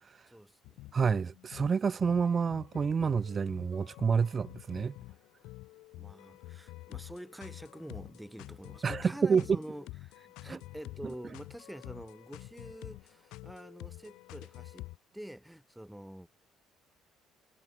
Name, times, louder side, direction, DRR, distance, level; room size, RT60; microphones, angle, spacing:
voice 1, 0.3-0.8 6.0-14.9 15.1-16.3, equal, 5° right, 7.1 m, -47 dB
sound 1, 0.6-15.0, left 19 dB, 80° left, 6.8 m, -48 dB
voice 2, 0.9-5.0 8.8-9.6 10.5-10.6 11.0-11.1, right 6 dB, 35° right, 6.3 m, -28 dB
supercardioid pair, 85°, 0 cm